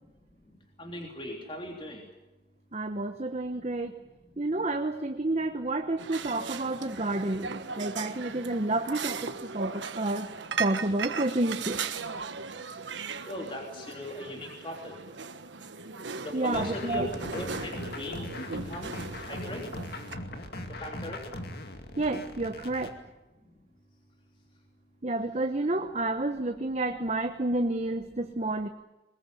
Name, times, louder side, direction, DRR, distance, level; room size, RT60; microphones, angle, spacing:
voice 1, 0.8-2.0 3.5-3.7 4.0-4.1 13.3-15.0 16.2-18.3 18.6-18.9 19.3-19.7 20.7-21.2, left 1 dB, 30° left, 1 dB, 3.3 m, -38 dB
voice 2, 2.7-3.9 4.4-10.3 10.6-11.8 16.3-17.1 22.0-23.0 25.0-28.7, right 2 dB, 35° right, 6 dB, 1.1 m, -30 dB
sound 1, 6.0-20.2, right 5 dB, 90° right, 1.4 m, -38 dB
sound 2, 16.5-22.9, left 1 dB, 60° left, 2.3 m, -39 dB
22.0 x 21.0 x 9.2 m, 1.0 s
head